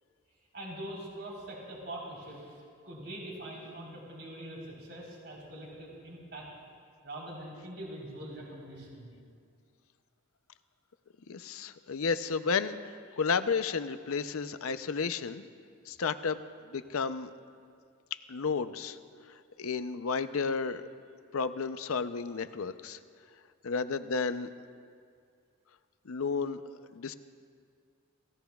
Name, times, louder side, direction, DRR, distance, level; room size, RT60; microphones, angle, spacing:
voice 1, 0.5-2.6 2.8-6.5 7.0-9.1, right 1 dB, 50° right, -4 dB, 3.9 m, -43 dB
voice 2, 11.3-15.4 15.9-17.3 18.3-19.0 19.3-20.9 21.3-23.0 23.6-24.5 26.1-26.6 26.9-27.1, left 5 dB, 70° left, 11 dB, 0.6 m, -32 dB
27.0 x 16.5 x 2.3 m, 2.2 s
head